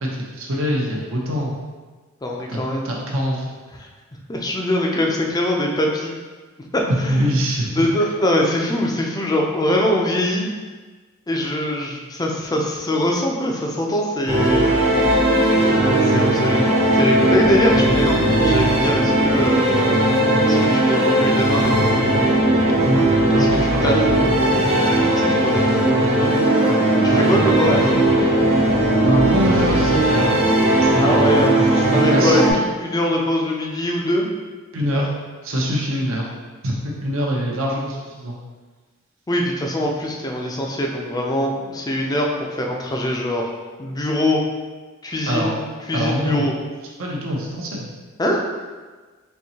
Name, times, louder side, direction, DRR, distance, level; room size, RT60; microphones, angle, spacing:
voice 1, 0.0-1.5 2.5-2.6 2.8-3.5 6.9-7.9 15.8-16.0 22.8-24.0 26.7-26.8 27.1-27.3 29.0-30.3 30.8-31.2 31.8-32.5 34.7-35.1 35.4-36.3 36.6-38.4 45.3-45.5 45.9-46.4 47.0-47.9, equal, 65° right, -2 dB, 0.8 m, -24 dB
voice 2, 2.2-2.9 4.3-6.1 6.7-7.3 7.7-10.5 11.3-14.7 16.0-20.0 20.4-22.2 23.3-26.0 27.0-28.0 30.9-31.6 31.9-34.3 39.3-43.4 43.8-44.4 45.0-46.5 48.2-48.4, left 1 dB, 20° left, 0 dB, 0.4 m, -23 dB
sound 1, 14.3-32.5, right 1 dB, 30° right, 0.7 m, -17 dB
4.4 x 2.7 x 2.8 m, 1.3 s
head